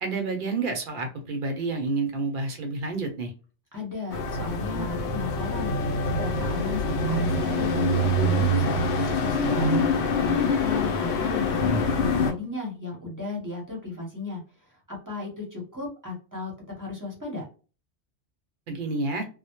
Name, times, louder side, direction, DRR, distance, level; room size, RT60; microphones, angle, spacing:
voice 1, 0.0-3.3 18.7-19.2, right 3 dB, 55° right, 4 dB, 0.7 m, -29 dB
voice 2, 3.7-5.7 6.1-14.4 14.9-16.5 16.8-17.4, left 3 dB, 20° right, -3 dB, 0.7 m, -35 dB
sound 1, 4.1-12.3, left 1 dB, 75° left, 0.8 m, -25 dB
sound 2, 11.3-12.5, left 1 dB, 30° left, 0.6 m, -34 dB
2.2 x 2.0 x 2.8 m, 0.35 s
omnidirectional pair, 1.1 m